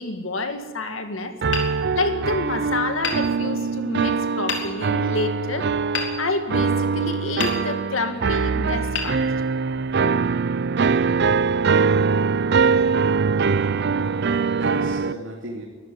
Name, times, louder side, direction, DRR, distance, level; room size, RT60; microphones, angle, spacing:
voice 1, 0.0-1.4 1.9-5.7 6.2-9.3, left 2 dB, 80° left, 6 dB, 2.2 m, -28 dB
sound 1, 1.4-15.1, right 5 dB, 60° right, 0.5 m, -22 dB
Hammer, 1.5-2.5 3.0-3.9 4.5-5.1 5.9-6.9 7.4-8.1 8.9-9.9, left 5 dB, 65° left, 4.0 m, -32 dB
voice 2, 13.9-15.7, right 2 dB, 75° right, -2 dB, 3.3 m, -33 dB
23.0 x 14.0 x 9.4 m, 1.4 s
head